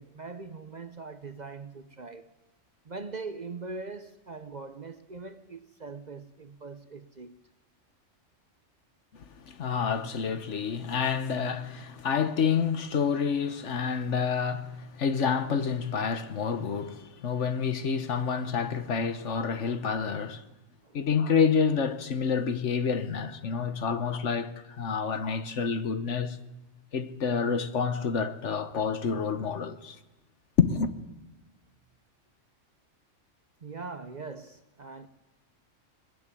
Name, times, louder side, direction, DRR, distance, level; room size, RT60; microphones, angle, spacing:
voice 1, 0.0-2.3 2.8-7.4 20.8-21.0 24.9-25.0 33.6-35.1, right 4 dB, 40° right, 0.8 m, -41 dB
voice 2, 9.4-20.4 20.9-26.4 26.9-30.0 30.6-30.9, left 6 dB, 70° left, 1.4 m, -28 dB
21.0 x 14.0 x 10.0 m
omnidirectional pair, 1.3 m